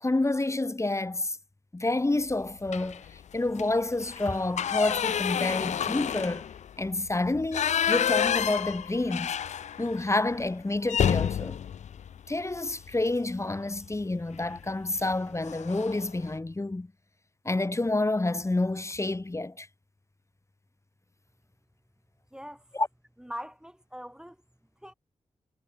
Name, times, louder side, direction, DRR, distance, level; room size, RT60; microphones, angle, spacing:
voice 1, 0.0-1.4 1.7-6.5 6.8-9.4 9.8-11.6 12.3-16.9 17.4-19.7 22.7-22.9, left 2 dB, 25° left, 1.3 m, -29 dB
sound 1, 2.7-3.1 3.5-3.6 4.0-10.0 10.3-10.5 10.9-13.0 14.3-14.6 15.0-15.1 15.4-16.1, left 8 dB, 75° left, 0.5 m, -29 dB
voice 2, 22.3-22.6 23.2-24.4 24.8-24.9, equal, 5° right, 1.1 m, -41 dB
cardioid pair, 55°, 12 cm